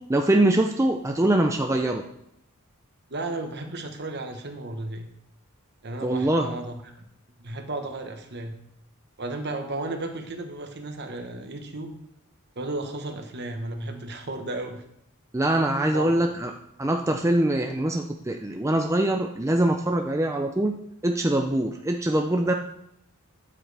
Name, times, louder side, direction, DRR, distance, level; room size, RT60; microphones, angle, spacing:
voice 1, 0.1-2.0 6.0-6.5 15.3-16.5 16.8-20.8 21.0-22.5, right 1 dB, 15° right, 3 dB, 0.5 m, -23 dB
voice 2, 3.1-5.1 5.8-7.1 7.4-8.5 9.2-12.0 12.6-14.8 15.9-16.1, right 2 dB, 50° right, 5 dB, 1.2 m, -34 dB
12.0 x 7.5 x 3.4 m, 0.76 s
head